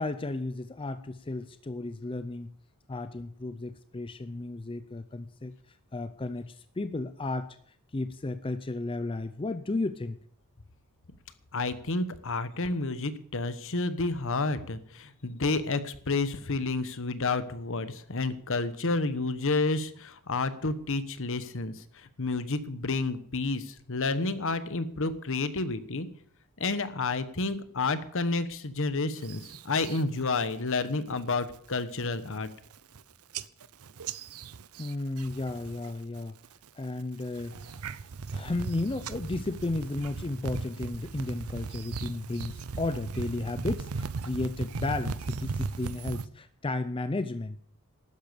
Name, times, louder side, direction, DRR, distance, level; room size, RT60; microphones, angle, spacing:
voice 1, 0.0-2.5 2.9-5.5 5.9-7.6 7.9-10.2 34.8-36.4 36.8-37.9 38.3-47.6, left 2 dB, 25° left, 11 dB, 0.5 m, -33 dB
voice 2, 11.5-26.1 26.6-32.5, left 3 dB, 60° left, 13 dB, 1.1 m, -30 dB
sound 1, 29.2-30.0 30.4-30.8 31.2-31.6 32.0-32.1 32.3-33.0 33.3-35.9 36.2-36.7 37.2-46.3, right 4 dB, 75° right, 0.7 m, -37 dB
12.5 x 10.5 x 6.9 m, 0.64 s
head